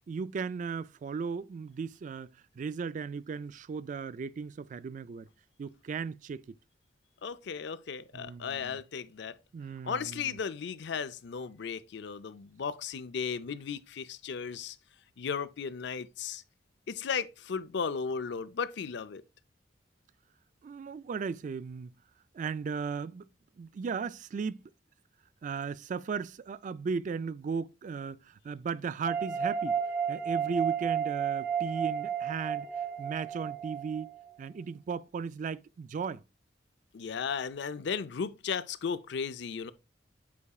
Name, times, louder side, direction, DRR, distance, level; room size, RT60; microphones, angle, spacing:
voice 1, 0.1-5.3 5.6-6.6 8.1-8.8 9.5-10.4 20.6-21.9 22.3-23.3 23.6-24.6 25.4-29.8 30.1-32.7 33.0-34.1 34.4-36.2, right 5 dB, 45° right, 0.3 m, -36 dB
voice 2, 7.2-9.4 9.8-14.8 15.2-16.4 16.9-19.2 36.9-39.7, left 6 dB, 65° left, 0.5 m, -35 dB
sound 1, 29.1-34.3, right 7 dB, 10° right, 0.7 m, -32 dB
8.4 x 4.7 x 2.3 m
head